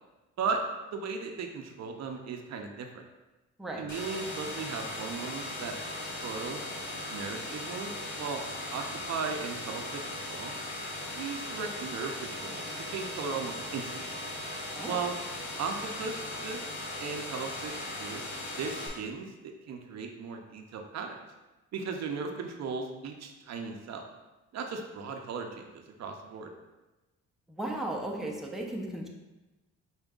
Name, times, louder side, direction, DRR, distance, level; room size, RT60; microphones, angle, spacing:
voice 1, 0.9-3.0 3.8-5.8 6.2-6.6 7.1-8.4 8.7-10.5 11.1-13.9 14.8-15.1 15.6-16.7 17.0-18.2 18.6-21.2 21.7-24.0 24.5-26.5, right 5 dB, 60° right, 4 dB, 0.6 m, -37 dB
sound 1, 3.9-18.9, left 1 dB, 70° left, 1.5 m, -38 dB
voice 2, 27.5-29.1, right 1 dB, ahead, -1 dB, 0.7 m, -35 dB
5.1 x 4.3 x 2.4 m, 1.1 s
cardioid pair, 90°, 30 cm